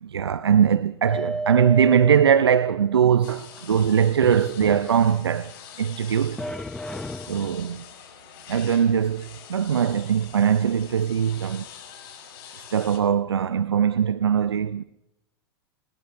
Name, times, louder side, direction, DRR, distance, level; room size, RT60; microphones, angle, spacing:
voice 1, 0.0-6.5 7.3-7.9 8.5-11.7 12.7-14.8, right 8 dB, 85° right, 0.5 m, -21 dB
sound 1, 1.1-3.1 4.2-5.5 6.4-7.8, right 1 dB, 5° left, 0.7 m, -33 dB
sound 2, 3.2-13.0, left 9 dB, 60° left, 7.9 m, -45 dB
29.0 x 17.0 x 2.6 m
hypercardioid pair, 105°, 13 cm